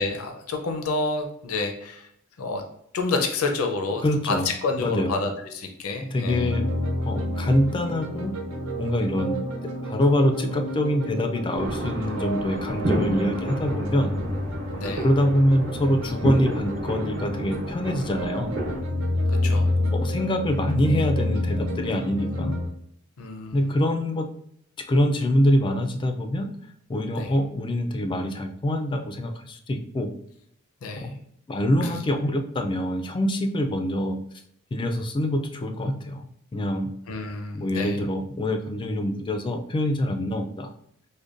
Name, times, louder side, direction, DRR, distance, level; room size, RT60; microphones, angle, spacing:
voice 1, 0.0-2.1 2.4-2.6 2.9-6.5 14.8-15.1 19.3-19.7 23.2-23.6 27.1-27.3 30.8-31.1 31.8-32.0 37.1-38.0, left 3 dB, 75° left, 4 dB, 0.5 m, -29 dB
voice 2, 4.0-4.5 4.8-5.1 6.1-6.7 7.0-8.3 8.8-9.4 9.8-14.2 15.0-18.5 19.9-22.6 23.5-24.3 24.8-26.5 26.9-30.1 31.5-34.2 34.7-36.3 36.5-36.9 37.5-40.7, left 1 dB, 20° left, 5 dB, 0.3 m, -25 dB
sound 1, 6.2-22.7, left 1 dB, 75° right, 0.6 m, -29 dB
sound 2, 11.5-18.8, right 1 dB, 55° right, 0.9 m, -31 dB
5.0 x 2.2 x 2.4 m, 0.70 s
head